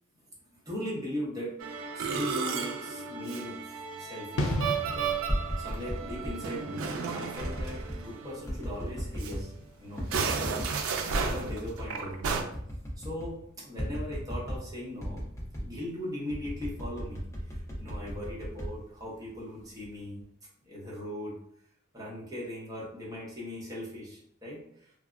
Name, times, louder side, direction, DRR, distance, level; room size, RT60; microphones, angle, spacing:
voice 1, 0.5-4.6 4.9-5.1 5.6-9.5 9.8-12.4 13.0-15.3 15.6-20.2 20.7-21.4 21.9-24.9, left 1 dB, 15° right, -6 dB, 0.7 m, -39 dB
Musical instrument, 1.6-8.5 8.7-8.9 9.2-9.3 9.9-12.4, right 5 dB, 80° right, 0.3 m, -33 dB
sound 1, 4.4-10.9 11.1-11.3, left 1 dB, 80° left, 0.5 m, -38 dB
sound 2, 5.3-6.4 7.4-8.0 8.5-9.5 10.0-10.7 11.2-11.9 12.2-12.3 12.5-13.4 13.8-14.7 15.0-15.7 16.3-19.4 19.8-20.2, equal, 15° left, 0.5 m, -36 dB
3.2 x 2.0 x 2.5 m, 0.70 s
head